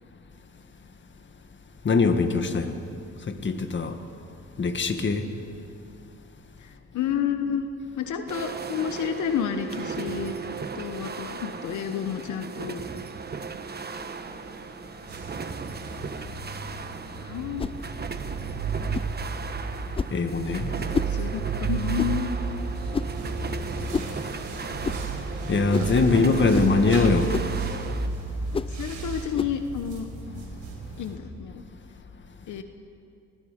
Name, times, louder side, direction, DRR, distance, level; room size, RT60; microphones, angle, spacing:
voice 1, 1.8-2.8 3.3-4.0 4.6-5.3 20.1-20.7 24.0-27.3, left 4 dB, 40° left, 7 dB, 1.9 m, -23 dB
voice 2, 6.6-7.6 7.9-10.3 10.7-12.8 17.1-17.7 21.1-22.3 28.7-30.1 31.0-31.6 32.5-32.6, left 8 dB, 75° left, 7 dB, 1.2 m, -30 dB
sound 1, 8.3-28.1, right 5 dB, 35° right, 1.3 m, -37 dB
sound 2, 15.1-31.1, right 5 dB, 70° right, 5.1 m, -33 dB
sound 3, 17.6-17.8 18.9-19.1 19.9-20.2 20.9-21.2 22.0-22.2 22.9-23.2 23.9-24.1 24.8-25.0 25.7-26.0 26.5-26.7 27.3-27.5 28.5-28.7 29.3-29.6, left 5 dB, 20° left, 0.4 m, -29 dB
28.5 x 20.5 x 5.3 m, 2.6 s
cardioid pair, 90°, 30 cm